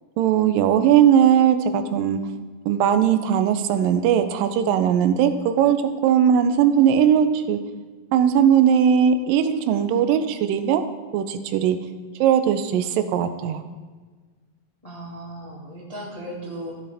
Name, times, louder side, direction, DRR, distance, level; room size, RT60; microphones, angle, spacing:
voice 1, 0.2-2.2 2.7-7.6 8.1-10.9 11.1-11.8 12.2-13.6, right 9 dB, 85° right, 9 dB, 2.3 m, -19 dB
voice 2, 14.8-16.7, right 1 dB, 25° left, -5 dB, 0.8 m, -36 dB
15.0 x 7.6 x 3.4 m, 1.4 s
omnidirectional pair, 3.9 m